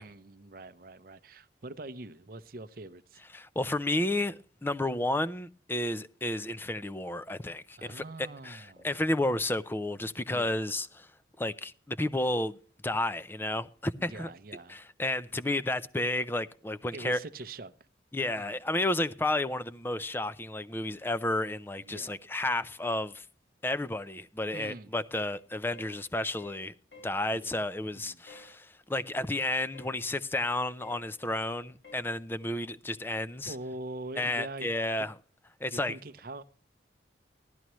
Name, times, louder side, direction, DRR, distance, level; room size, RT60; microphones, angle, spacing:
voice 1, 0.0-3.2 7.8-8.9 10.3-10.6 14.0-14.8 16.9-17.7 18.4-18.6 21.8-22.2 24.5-24.9 27.3-27.6 27.9-28.2 33.5-34.7 35.0-35.1 35.7-36.4, right 2 dB, 50° right, 0.7 m, -43 dB
voice 2, 3.3-11.1 11.4-12.6 12.8-14.3 14.7-17.2 18.1-23.2 23.6-26.7 27.0-33.5 34.2-35.1 35.6-36.0, left 1 dB, 10° left, 0.4 m, -32 dB
sound 1, 24.5-24.8 25.1-25.4 25.7-26.0 26.4-26.6 26.9-27.2 28.3-28.5 29.7-30.0 30.8-31.1 31.8-32.1, left 2 dB, 70° left, 5.9 m, -52 dB
15.0 x 12.5 x 3.1 m
head